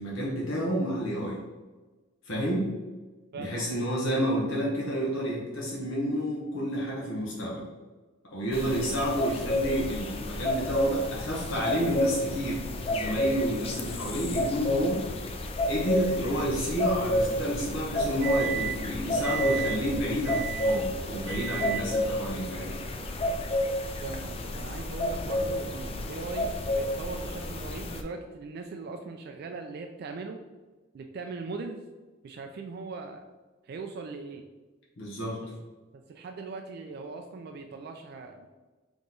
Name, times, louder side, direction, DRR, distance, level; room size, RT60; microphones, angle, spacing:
voice 1, 0.0-1.4 2.3-2.7 3.4-7.6 8.3-12.6 12.9-15.3 15.7-22.7 35.0-35.4, equal, 75° left, -4 dB, 1.0 m, -30 dB
voice 2, 3.3-3.7 24.0-30.4 30.9-31.8 32.2-33.3 33.7-34.4 36.1-38.5, right 3 dB, 50° right, 4 dB, 0.3 m, -40 dB
sound 1, 8.5-28.0, left 1 dB, 30° left, 0.3 m, -30 dB
Microwave oven, 16.3-18.9 19.2-19.8 20.2-20.8 21.3-21.9, right 8 dB, 15° right, 0.7 m, -36 dB
3.7 x 3.0 x 3.8 m, 1.2 s
head